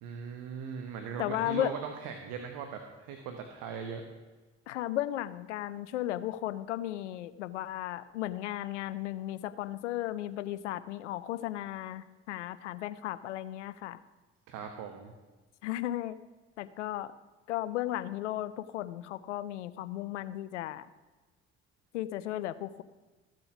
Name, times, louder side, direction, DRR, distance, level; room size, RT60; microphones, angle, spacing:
voice 1, 0.0-4.0 14.5-15.1, right 6 dB, 70° right, 5 dB, 1.2 m, -39 dB
voice 2, 1.2-1.7 4.7-14.0 15.6-16.2 16.6-17.1 17.5-20.9 21.9-22.8, left 13 dB, 90° left, 15 dB, 0.5 m, -35 dB
14.5 x 7.7 x 5.9 m, 1.2 s
hypercardioid pair, 55°, 34 cm